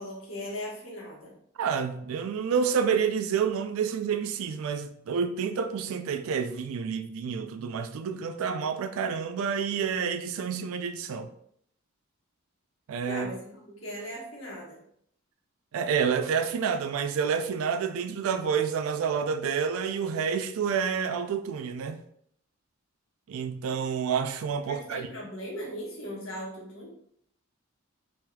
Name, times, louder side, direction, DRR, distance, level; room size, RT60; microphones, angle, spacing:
voice 1, 0.0-1.3 13.1-14.8 24.7-26.9, equal, 75° left, 1.2 m, -38 dB
voice 2, 1.6-11.3 12.9-13.3 15.7-22.0 23.3-25.1, right 6 dB, 85° right, 0.3 m, -29 dB
3.5 x 2.9 x 2.2 m
head